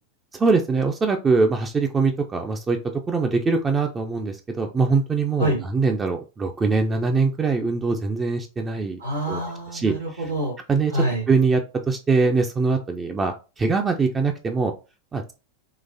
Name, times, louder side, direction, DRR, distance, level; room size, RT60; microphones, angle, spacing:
voice 1, 0.3-9.0 9.3-9.4 9.7-9.9 10.7-10.9 11.3-11.6 11.9-14.7 15.1-15.3, right 4 dB, 20° right, 4 dB, 0.4 m, -22 dB
voice 2, 9.0-10.5 10.9-11.2, right 1 dB, 80° right, -4 dB, 1.4 m, -26 dB
3.8 x 2.5 x 2.7 m, 0.32 s
figure-of-eight pair, 90°, 0 cm